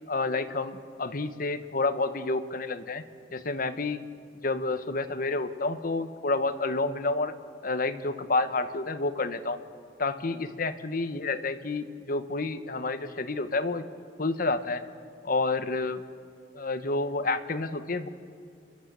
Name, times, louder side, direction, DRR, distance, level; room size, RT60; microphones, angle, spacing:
voice 1, 0.1-3.0 3.3-4.0 4.4-7.3 7.6-9.6 10.0-13.8 14.2-14.8 15.2-16.0 16.5-18.1, left 3 dB, 50° left, 10 dB, 1.0 m, -29 dB
28.0 x 12.0 x 8.1 m, 2.4 s
head